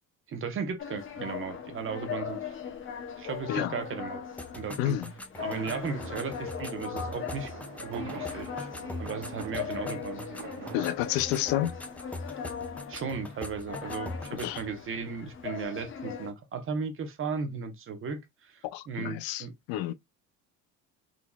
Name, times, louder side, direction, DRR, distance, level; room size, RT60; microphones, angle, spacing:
voice 1, 0.3-2.5 3.2-4.2 4.5-5.0 5.4-7.5 7.8-8.7 9.0-10.2 12.9-19.5, right 5 dB, 35° right, 0.9 m, -36 dB
sound 1, 0.8-16.3, left 7 dB, 35° left, 0.8 m, -39 dB
sound 2, 4.4-14.7, left 1 dB, 5° left, 0.5 m, -43 dB
voice 2, 4.8-5.1 10.7-11.8 14.3-14.6 18.6-19.9, left 13 dB, 75° left, 0.5 m, -30 dB
sound 3, 5.4-10.9, right 14 dB, 70° right, 0.6 m, -46 dB
3.8 x 2.9 x 2.3 m
cardioid pair, 115°, 36 cm